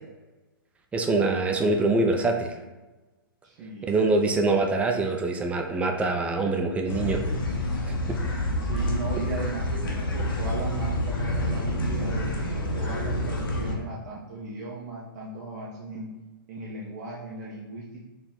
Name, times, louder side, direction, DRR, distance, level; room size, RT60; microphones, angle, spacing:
voice 1, 0.9-2.6 3.8-7.2 7.9-8.2, right 3 dB, 10° right, 3 dB, 0.3 m, -24 dB
voice 2, 3.4-4.0 8.6-9.9 10.1-16.1 16.5-18.1, right 2 dB, 45° right, -4 dB, 0.6 m, -37 dB
sound 1, 6.9-13.8, left 1 dB, 70° left, 0.8 m, -28 dB
4.3 x 2.0 x 3.7 m, 1.2 s
hypercardioid pair, 115°, 12 cm